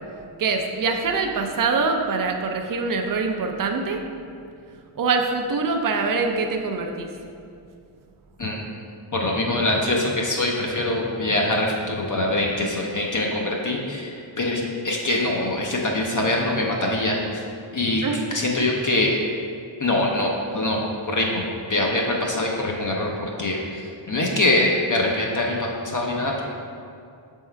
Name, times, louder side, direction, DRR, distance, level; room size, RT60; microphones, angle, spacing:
voice 1, 0.4-4.0 4.9-7.1 18.0-18.2, right 4 dB, 45° right, 4 dB, 0.5 m, -24 dB
voice 2, 9.1-17.5 17.7-18.0 18.3-19.2 19.8-21.4 21.7-26.5, left 1 dB, 40° left, -1 dB, 0.6 m, -24 dB
6.4 x 3.6 x 4.4 m, 2.5 s
wide cardioid pair, 165°, 50 cm